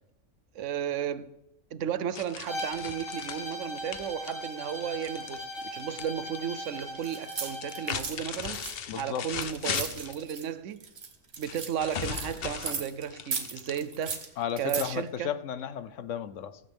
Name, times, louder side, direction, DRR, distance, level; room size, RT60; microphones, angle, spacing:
voice 1, 0.5-1.3 1.7-8.6 8.9-10.8 11.4-14.2 14.6-15.3, right 9 dB, 80° right, 1.1 m, -34 dB
sound 1, 2.1-6.1 6.3-7.0 7.5-10.2 11.4-14.1, left 8 dB, 55° left, 0.9 m, -37 dB
Bowed string instrument, 2.5-7.9, left 1 dB, 15° left, 3.0 m, -39 dB
sound 2, 7.0-10.5 10.8-13.0 13.3-14.9, right 5 dB, 60° right, 1.5 m, -37 dB
voice 2, 8.9-9.2 14.4-16.6, left 9 dB, 85° left, 1.1 m, -34 dB
15.5 x 15.0 x 3.5 m
omnidirectional pair, 1.3 m